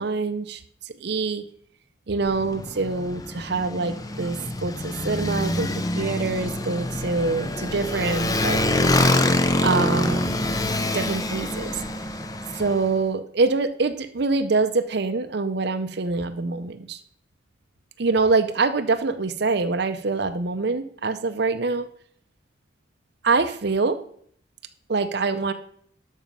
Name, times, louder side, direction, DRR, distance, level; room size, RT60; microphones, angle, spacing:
voice 1, 0.0-1.4 2.1-5.7 5.9-8.6 9.6-10.6 10.9-11.8 12.5-17.0 18.0-21.9 23.2-24.0 24.9-25.5, right 3 dB, 55° right, 8 dB, 0.6 m, -25 dB
Motorcycle, 2.2-12.9, left 1 dB, 20° left, 0.6 m, -25 dB
12.0 x 6.3 x 5.5 m, 0.63 s
head